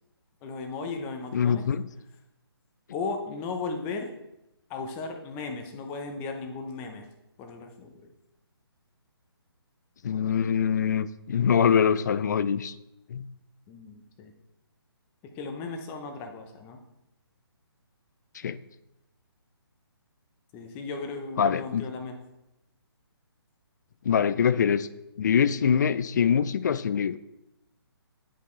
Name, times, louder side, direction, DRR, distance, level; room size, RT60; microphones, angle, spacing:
voice 1, 0.4-1.6 2.9-4.1 4.7-7.1 7.4-8.1 13.7-14.3 15.4-16.8 20.5-22.2, left 4 dB, 15° left, 4 dB, 0.8 m, -36 dB
voice 2, 1.3-1.8 10.0-12.7 13.1-13.3 18.4-18.6 21.4-21.9 24.1-24.9 25.2-27.2, left 7 dB, 45° left, 15 dB, 0.4 m, -24 dB
9.9 x 5.5 x 3.3 m, 0.88 s
hypercardioid pair, 155°, 14 cm